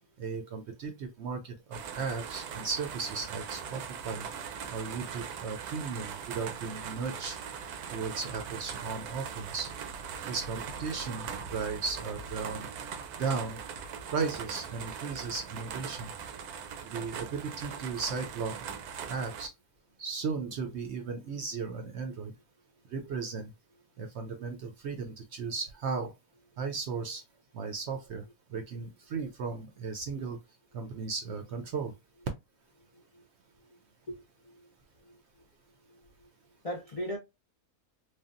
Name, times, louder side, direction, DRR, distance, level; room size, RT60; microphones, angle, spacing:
voice 1, 0.2-4.3 4.7-7.4 7.9-9.7 10.2-12.7 13.2-13.6 14.1-16.1 16.8-18.6 19.1-19.5 20.0-22.3 22.9-23.5 24.0-26.1 26.6-27.2 27.5-28.2 28.5-30.4 30.7-31.9, right 5 dB, 65° right, 0.7 m, -36 dB
sound 1, 1.7-19.5, right 7 dB, 85° right, 1.1 m, -40 dB
voice 2, 32.9-33.2 33.7-33.8 34.1-34.7 35.0-35.2 35.9-36.3 36.6-37.2, equal, 55° left, 0.4 m, -40 dB
3.3 x 2.3 x 2.4 m
omnidirectional pair, 1.5 m